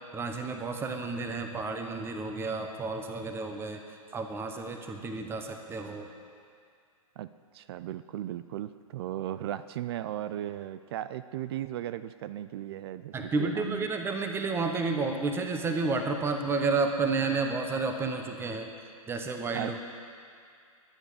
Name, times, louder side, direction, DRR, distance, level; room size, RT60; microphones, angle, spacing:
voice 1, 0.1-3.8 4.1-6.1 13.1-18.7 19.1-19.8, right 3 dB, 15° right, 5 dB, 1.1 m, -31 dB
voice 2, 7.2-13.9 19.5-19.8, right 12 dB, 45° right, 14 dB, 0.5 m, -36 dB
22.0 x 9.1 x 5.0 m, 2.3 s
figure-of-eight pair, 120°, 18 cm